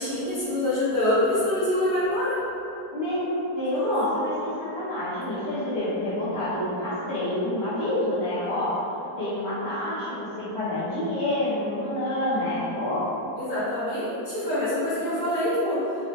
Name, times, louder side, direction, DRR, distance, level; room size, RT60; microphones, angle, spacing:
voice 1, 0.0-2.4 3.8-3.9 13.4-16.1, left 1 dB, 90° left, -14 dB, 2.0 m, -25 dB
voice 2, 2.9-8.8 9.1-13.0, left 1 dB, 30° left, -12 dB, 1.4 m, -27 dB
4.5 x 2.9 x 3.1 m, 2.9 s
omnidirectional pair, 1.9 m